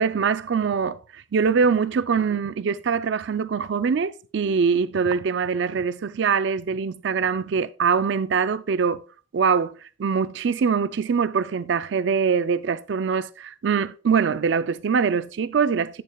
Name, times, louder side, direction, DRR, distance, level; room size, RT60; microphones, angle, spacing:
voice 1, 0.0-9.0 9.3-16.0, right 6 dB, 60° right, 0.4 m, -23 dB
8.6 x 6.4 x 2.3 m
head